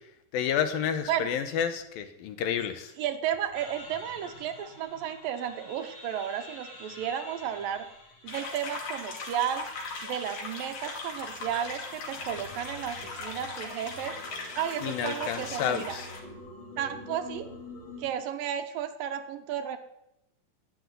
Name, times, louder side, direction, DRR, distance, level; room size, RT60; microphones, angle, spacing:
voice 1, 0.3-2.9 14.8-16.1, left 8 dB, 75° left, 9 dB, 2.7 m, -30 dB
voice 2, 3.0-7.9 8.2-9.7 10.0-14.2 14.6-16.0 16.8-17.5 18.0-19.8, right 10 dB, 75° right, 9 dB, 2.4 m, -33 dB
sound 1, 3.5-18.1, left 2 dB, 35° left, 2.7 m, -48 dB
sound 2, 8.3-16.2, left 3 dB, 55° left, 3.6 m, -39 dB
12.5 x 8.0 x 9.7 m, 0.84 s
omnidirectional pair, 4.4 m